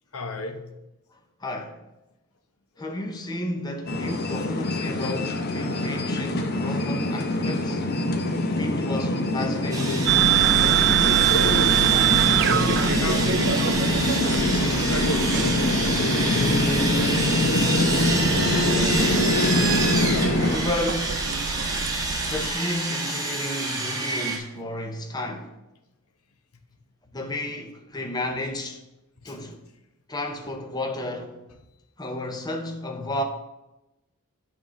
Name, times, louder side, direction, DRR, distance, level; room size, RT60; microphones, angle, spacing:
voice 1, 0.1-0.7 5.6-5.8 10.4-10.5 11.3-13.6 14.3-18.3 29.2-29.4, left 2 dB, 75° left, 1.0 m, -33 dB
voice 2, 1.4-1.8 2.8-7.8 8.6-10.0 16.4-16.5 19.7-20.0 20.3-21.2 22.3-25.5 27.1-28.8 29.2-29.6 30.1-31.4 32.0-33.2, left 1 dB, 20° left, 0.7 m, -32 dB
sound 1, 3.9-20.6, left 1 dB, 45° left, 0.8 m, -24 dB
Sawing, 9.7-24.4, right 2 dB, 15° right, 1.3 m, -28 dB
sound 2, 10.1-22.5, right 10 dB, 50° right, 0.4 m, -25 dB
8.7 x 3.7 x 6.2 m
head